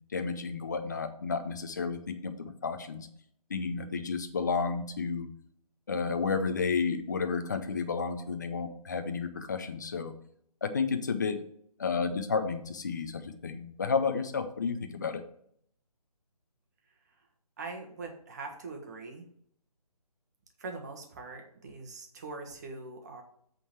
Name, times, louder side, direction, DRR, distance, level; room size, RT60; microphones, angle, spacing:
voice 1, 0.0-3.1 3.5-5.3 5.9-10.1 10.6-11.4 11.8-15.2, left 5 dB, 30° left, 8 dB, 0.6 m, -31 dB
voice 2, 17.6-19.3 20.6-23.2, right 3 dB, 25° right, 3 dB, 1.2 m, -42 dB
8.3 x 3.8 x 6.5 m, 0.67 s
hypercardioid pair, 170°, 20 cm